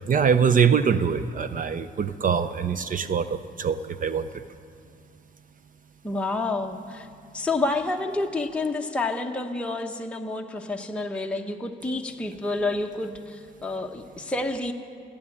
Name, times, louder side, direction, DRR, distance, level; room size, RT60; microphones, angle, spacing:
voice 1, 0.1-4.3, right 6 dB, 45° right, 12 dB, 0.6 m, -23 dB
voice 2, 6.0-7.1 7.3-14.7, left 2 dB, 5° left, 2 dB, 0.9 m, -29 dB
17.0 x 8.7 x 9.1 m, 2.3 s
cardioid pair, 90°, 20 cm